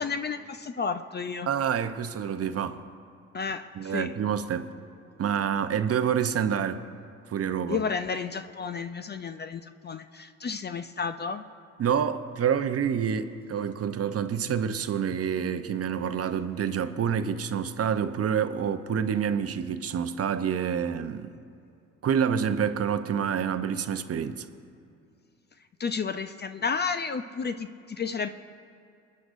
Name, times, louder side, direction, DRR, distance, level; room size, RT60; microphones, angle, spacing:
voice 1, 0.0-1.5 3.3-4.1 7.7-11.4 25.8-28.3, left 5 dB, 25° left, 0.5 m, -32 dB
voice 2, 1.5-2.8 3.8-4.7 5.2-6.9 7.3-7.8 11.8-21.3 22.0-24.5, right 8 dB, 35° right, 0.8 m, -27 dB
28.0 x 9.7 x 2.6 m
hypercardioid pair, 60°, 39 cm